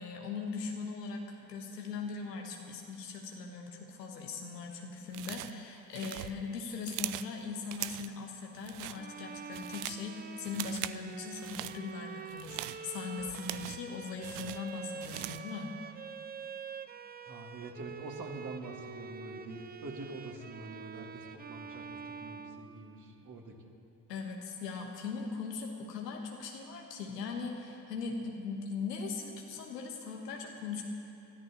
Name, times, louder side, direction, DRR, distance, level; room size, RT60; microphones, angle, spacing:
voice 1, 0.0-15.7 24.1-30.8, left 4 dB, 85° left, 1 dB, 1.3 m, -40 dB
sound 1, 5.1-5.6 5.9-7.3 7.7-8.2 8.6-9.0 9.4-10.1 10.5-11.0 11.3-11.8 12.3-13.9 14.2-15.5, right 16 dB, 75° right, 0.6 m, -41 dB
Bowed string instrument, 8.9-23.2, right 6 dB, 20° right, 0.5 m, -46 dB
voice 2, 17.3-23.5, right 2 dB, 40° right, 0 dB, 2.5 m, -45 dB
24.5 x 13.5 x 3.0 m, 2.7 s
hypercardioid pair, 45°, 47 cm